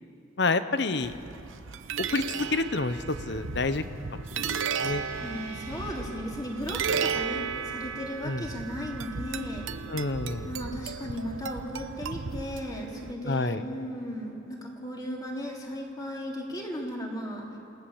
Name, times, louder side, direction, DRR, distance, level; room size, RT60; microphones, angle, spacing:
voice 1, 0.4-1.1 2.0-3.8 4.1-5.0 8.2-8.5 9.9-10.5 13.2-13.6, left 3 dB, 60° left, 11 dB, 0.9 m, -29 dB
sound 1, 1.0-13.1, right 6 dB, 85° right, 0.9 m, -34 dB
sound 2, 4.8-9.0, left 2 dB, 90° left, 5.4 m, -50 dB
voice 2, 5.2-9.6 10.4-17.5, equal, 20° left, -1 dB, 3.2 m, -36 dB
28.0 x 17.5 x 7.2 m, 2.7 s
head